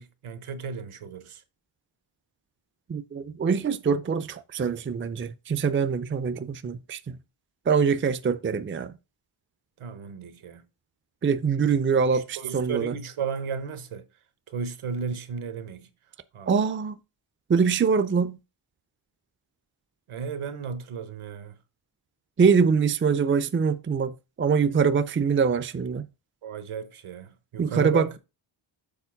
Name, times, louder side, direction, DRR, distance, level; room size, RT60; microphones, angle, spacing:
voice 1, 0.0-1.4 9.8-10.6 11.9-14.1 14.5-15.9 16.3-16.5 20.1-21.5 26.4-28.1, right 6 dB, 80° right, 1.1 m, -34 dB
voice 2, 2.9-7.2 7.7-9.0 11.2-13.0 16.5-17.0 17.5-18.4 22.4-26.1 27.6-28.2, right 6 dB, 25° right, 0.4 m, -24 dB
7.1 x 4.2 x 5.7 m
wide cardioid pair, 120°, 50 cm